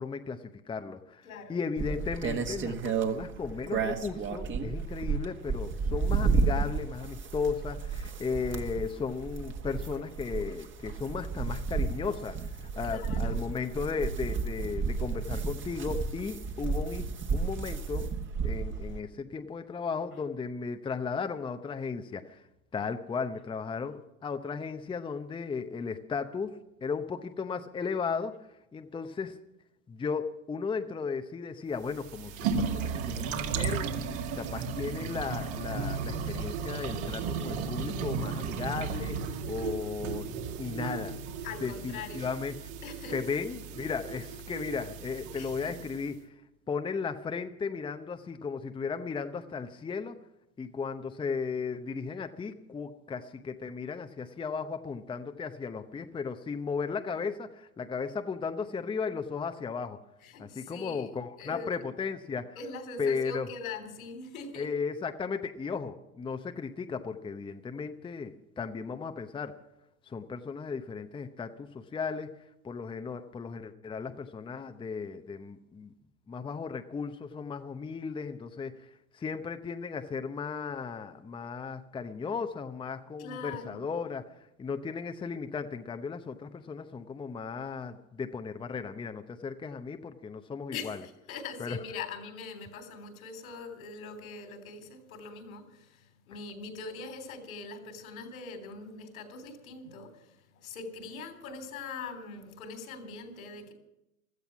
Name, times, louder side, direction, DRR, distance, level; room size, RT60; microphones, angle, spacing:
voice 1, 0.0-17.1 17.3-18.1 18.4-22.4 22.7-28.3 28.7-29.4 29.9-33.9 34.3-40.3 40.6-41.2 41.6-42.7 43.1-46.4 46.7-50.2 50.6-60.0 60.4-62.6 63.0-63.5 64.5-69.5 70.1-72.3 72.6-75.9 76.3-91.0 91.6-91.8, left 5 dB, 10° left, 7 dB, 0.8 m, -35 dB
voice 2, 1.2-1.6 12.8-13.4 41.4-42.3 42.8-43.2 45.4-45.7 60.2-61.1 61.4-61.7 62.6-64.7 83.2-83.9 90.7-103.7, left 4 dB, 75° left, 7 dB, 3.6 m, -42 dB
sound 1, 1.8-19.0, right 5 dB, 25° right, 1.6 m, -32 dB
sound 2, 31.8-46.1, right 5 dB, 55° right, 2.2 m, -35 dB
16.0 x 13.0 x 6.0 m, 0.88 s
hypercardioid pair, 100°, 43 cm